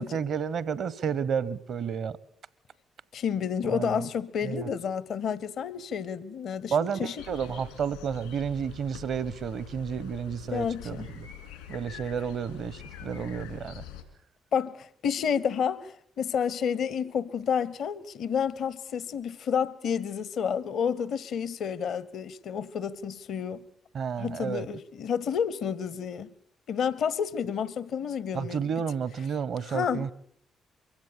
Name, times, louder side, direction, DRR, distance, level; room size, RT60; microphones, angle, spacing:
voice 1, 0.0-2.2 3.6-4.1 4.4-4.7 6.7-11.3 11.7-13.8 23.9-24.7 28.3-30.1, right 7 dB, 60° right, 0.9 m, -31 dB
voice 2, 3.1-7.2 10.5-11.1 14.5-23.6 24.2-26.3 26.7-28.6 29.7-30.1, left 7 dB, 60° left, 0.8 m, -30 dB
sound 1, 7.2-14.0, left 10 dB, 85° left, 2.4 m, -45 dB
23.5 x 16.0 x 7.4 m
hypercardioid pair, 40°, 0 cm